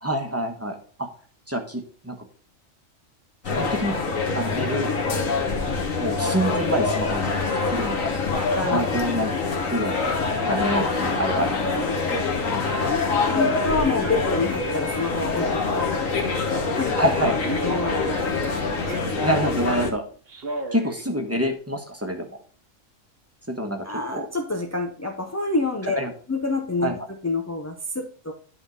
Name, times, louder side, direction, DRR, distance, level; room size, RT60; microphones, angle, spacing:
voice 1, 0.0-1.1 1.5-2.2 3.5-4.0 4.3-4.9 6.0-8.0 8.7-9.3 9.7-10.0 10.4-11.6 17.0-17.3 19.2-20.0 20.7-22.3 23.5-23.8 24.1-24.3 25.9-26.1 26.8-26.9, equal, 10° right, 4 dB, 1.1 m, -26 dB
sound 1, 3.4-19.9, left 4 dB, 80° left, 1.5 m, -25 dB
Male speech man speaking, 5.8-6.3 6.7-9.9 10.3-11.7 11.9-12.8 13.9-16.3 16.7-17.0 17.4-19.8 20.3-21.0 21.5-21.6, right 2 dB, 50° right, 1.3 m, -37 dB
voice 2, 8.5-8.9 10.9-12.1 13.3-17.0 17.5-18.6 18.9-19.1 23.8-26.0 26.3-28.3, left 2 dB, 25° left, 3 dB, 0.3 m, -28 dB
10.5 x 3.6 x 5.2 m, 0.44 s
omnidirectional pair, 1.4 m